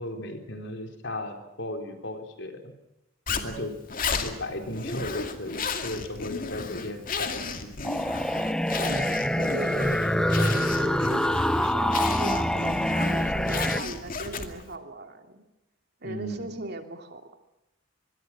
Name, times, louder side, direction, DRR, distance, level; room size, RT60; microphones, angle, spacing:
voice 1, 0.0-2.7 3.4-3.7 4.1-7.9 16.0-16.5, left 1 dB, 60° left, 5 dB, 4.3 m, -36 dB
Zipper (clothing), 3.3-14.7, left 4 dB, 45° left, 2.4 m, -34 dB
voice 2, 3.3-3.7 8.8-15.5 16.0-17.3, right 2 dB, 55° right, 6 dB, 3.0 m, -39 dB
sound 1, 7.8-13.8, equal, 5° left, 1.0 m, -25 dB
25.5 x 22.0 x 6.2 m, 0.91 s
head